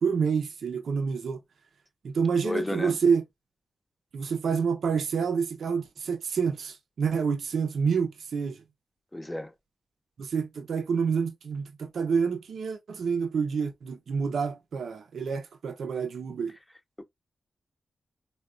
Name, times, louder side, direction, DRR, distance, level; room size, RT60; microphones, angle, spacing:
voice 1, 0.0-1.4 2.0-3.2 4.1-8.6 10.2-16.5, right 6 dB, 75° right, 0.5 m, -28 dB
voice 2, 2.4-3.0 9.1-9.5 17.0-17.1, left 1 dB, 15° left, 0.7 m, -31 dB
3.6 x 2.2 x 2.3 m
cardioid pair, 45°, 0 cm